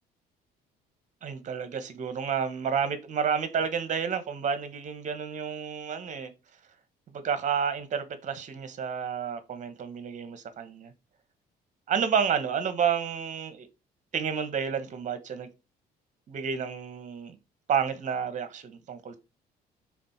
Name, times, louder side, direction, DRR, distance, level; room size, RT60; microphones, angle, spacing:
voice 1, 1.2-6.3 7.1-10.9 11.9-13.7 14.1-15.5 16.3-17.3 17.7-19.2, right 7 dB, 45° right, 1.3 m, -30 dB
5.0 x 3.9 x 5.9 m
cardioid pair, 110°, 17 cm